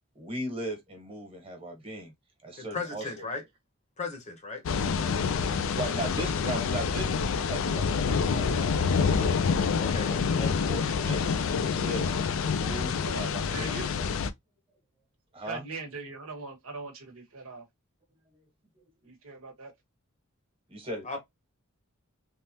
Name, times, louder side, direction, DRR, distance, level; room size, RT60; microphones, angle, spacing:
voice 1, 0.1-2.1 2.4-3.3 5.3-9.3 10.0-11.3 11.6-12.1 12.4-13.7 15.3-15.6 18.3-18.4 20.7-21.2, right 1 dB, 25° right, 1.3 m, -38 dB
voice 2, 2.6-3.4 4.0-4.6 9.8-10.1 21.0-21.2, left 4 dB, 35° left, 0.8 m, -36 dB
sound 1, 4.7-14.3, left 5 dB, 65° left, 0.4 m, -27 dB
voice 3, 12.1-13.9 15.4-17.7 19.0-19.7, right 3 dB, 80° right, 1.1 m, -42 dB
3.4 x 2.0 x 2.8 m
head